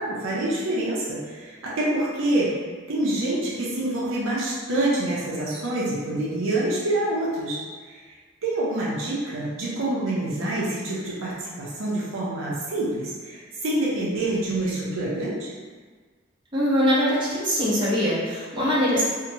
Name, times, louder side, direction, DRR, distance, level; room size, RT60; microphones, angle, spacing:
voice 1, 0.0-2.5 2.9-8.0 8.4-15.5, right 1 dB, 65° right, -7 dB, 0.6 m, -26 dB
voice 2, 16.5-19.0, equal, 25° right, -9 dB, 0.7 m, -22 dB
2.8 x 2.1 x 2.7 m, 1.5 s
head